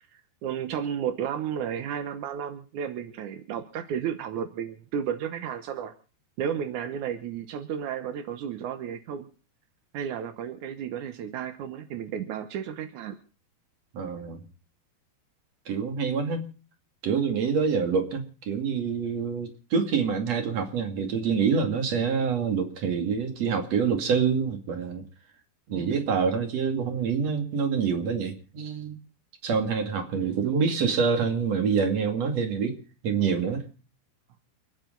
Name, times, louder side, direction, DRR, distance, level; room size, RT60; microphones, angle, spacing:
voice 1, 0.1-5.9 6.4-9.3 9.9-13.2 30.1-30.7, right 8 dB, 70° right, 9 dB, 1.9 m, -33 dB
voice 2, 13.9-14.4 15.7-16.5 17.0-25.0 25.7-29.0 29.4-32.7 33.0-33.6, right 6 dB, 45° right, 6 dB, 3.1 m, -26 dB
29.0 x 10.0 x 3.9 m, 0.36 s
omnidirectional pair, 4.9 m